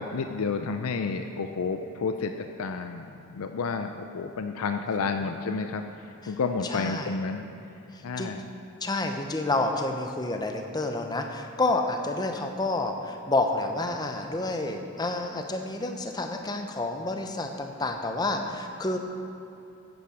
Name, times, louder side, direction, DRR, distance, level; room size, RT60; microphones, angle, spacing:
voice 1, 0.0-7.4 8.0-8.4, left 4 dB, 80° left, 6 dB, 0.5 m, -31 dB
voice 2, 6.7-7.2 7.9-8.3 8.8-19.0, left 2 dB, 20° left, 4 dB, 0.7 m, -29 dB
10.5 x 8.5 x 4.9 m, 2.9 s
head